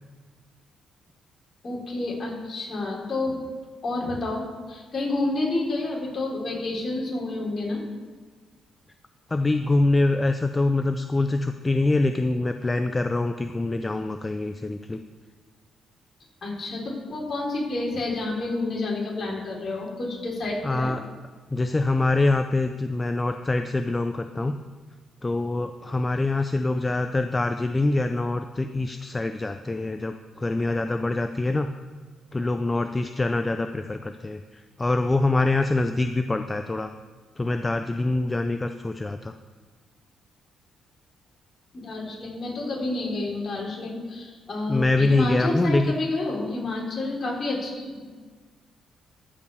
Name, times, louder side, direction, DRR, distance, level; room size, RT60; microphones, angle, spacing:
voice 1, 1.6-3.4 3.8-7.8 16.4-20.9 41.7-48.0, left 2 dB, 45° left, -3 dB, 3.6 m, -29 dB
voice 2, 9.3-15.0 20.6-21.0 21.5-24.6 25.2-31.7 32.3-36.9 37.4-39.4 44.7-45.9, left 2 dB, 20° left, 8 dB, 0.4 m, -24 dB
13.5 x 5.4 x 6.8 m, 1.5 s
cardioid pair, 90°, 0 cm